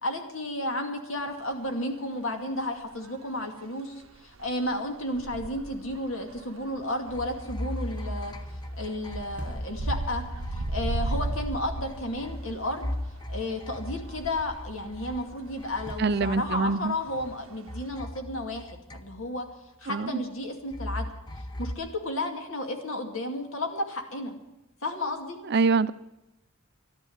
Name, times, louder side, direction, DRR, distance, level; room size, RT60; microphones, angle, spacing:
voice 1, 0.0-10.2 10.5-12.9 13.3-19.5 19.8-21.1 21.6-24.4 24.8-25.4, left 1 dB, 65° left, 4 dB, 2.4 m, -33 dB
sound 1, 1.2-1.3 1.7-2.0 3.0-3.5 4.0-13.2 13.5-17.9, right 2 dB, 70° right, 0.8 m, -37 dB
sound 2, 7.1-17.4 17.7-19.5 20.7-21.7, left 1 dB, 20° left, 0.7 m, -38 dB
sound 3, 9.4-9.8 10.7-11.7 15.9-16.2 16.8-17.6, right 1 dB, 5° right, 1.1 m, -45 dB
voice 2, 16.0-16.9 19.9-20.1 25.5-25.9, right 4 dB, 50° right, 15 dB, 0.5 m, -24 dB
13.5 x 12.0 x 7.9 m, 0.97 s
head